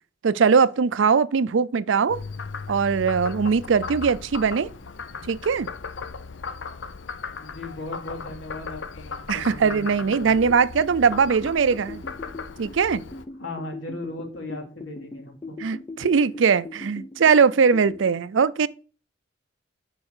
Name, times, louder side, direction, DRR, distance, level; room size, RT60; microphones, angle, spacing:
voice 1, 0.2-2.2 2.7-4.7 5.3-5.7 9.3-12.0 12.6-13.0 15.6-18.7, right 5 dB, 75° right, 0.5 m, -20 dB
Frog, 2.1-13.3, left 5 dB, 70° left, 0.7 m, -37 dB
voice 2, 7.4-10.3 13.4-15.6, left 2 dB, 85° left, 2.7 m, -37 dB
sound 1, 10.4-18.1, left 2 dB, 20° left, 0.5 m, -40 dB
7.0 x 4.7 x 6.6 m
head